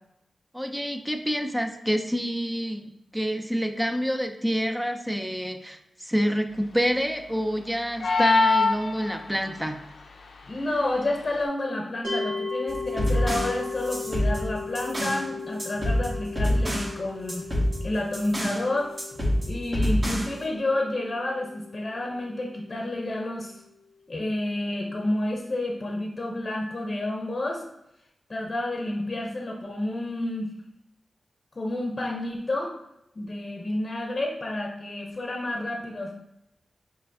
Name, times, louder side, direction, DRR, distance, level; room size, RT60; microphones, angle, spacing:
voice 1, 0.5-9.8, equal, 5° right, 5 dB, 0.5 m, -27 dB
sound 1, 8.0-9.5, left 3 dB, 85° left, 0.5 m, -22 dB
voice 2, 10.5-17.5 17.8-18.9 19.5-23.6 24.1-27.6 28.3-30.5 31.5-32.7 33.1-36.1, left 1 dB, 45° left, 0 dB, 0.7 m, -30 dB
sound 2, 12.0-23.2, left 4 dB, 75° right, 1.5 m, -37 dB
sound 3, 12.7-15.3 15.6-17.0 17.3-18.6 19.0-20.4, equal, 45° right, 1.5 m, -27 dB
5.4 x 3.3 x 2.7 m, 0.81 s
cardioid pair, 50°, 0 cm